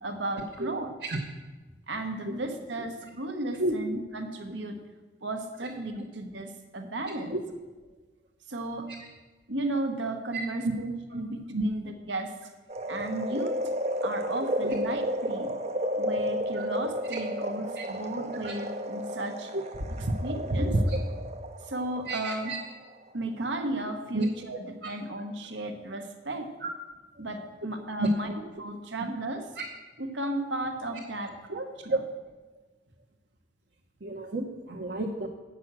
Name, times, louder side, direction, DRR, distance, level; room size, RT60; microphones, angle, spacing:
voice 1, 0.0-0.9 1.9-4.8 5.2-7.4 8.5-8.9 9.5-12.3 12.9-13.6 14.0-15.5 16.0-19.5 20.2-20.7 21.6-22.6 23.1-26.5 27.2-28.3 28.6-29.5 30.0-32.0, right 1 dB, 75° right, 5 dB, 1.2 m, -34 dB
voice 2, 7.1-7.4 10.3-10.7 11.1-11.2 11.5-11.6 13.3-13.4 14.6-14.7 16.6-16.7 17.8-17.9 18.4-18.5 19.5-19.6 20.0-20.1 20.5-21.0 22.1-22.6 24.1-24.3 24.8-24.9 26.6-26.7 28.0-28.1 31.5-31.6 34.0-35.3, right 1 dB, 55° right, -1 dB, 1.0 m, -30 dB
sound 1, 12.7-23.0 23.4-23.5, equal, 35° right, 0.6 m, -33 dB
8.7 x 6.2 x 7.4 m, 1.2 s
head